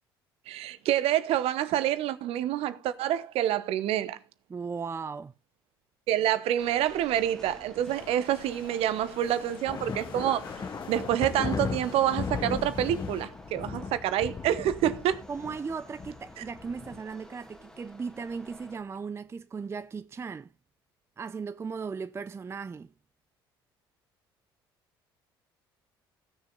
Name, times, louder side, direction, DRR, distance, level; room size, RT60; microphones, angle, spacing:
voice 1, 0.5-4.2 6.1-10.4 10.9-15.2, right 12 dB, 55° right, 0.9 m, -27 dB
voice 2, 4.5-5.3 15.3-20.5 21.2-22.9, right 5 dB, 20° right, 0.5 m, -37 dB
sound 1, 6.6-18.8, equal, 5° left, 2.5 m, -52 dB
sound 2, 7.9-13.3, left 6 dB, 75° left, 1.4 m, -49 dB
sound 3, 9.7-17.0, left 5 dB, 30° left, 0.9 m, -36 dB
16.5 x 6.6 x 3.9 m
figure-of-eight pair, 55°, 12 cm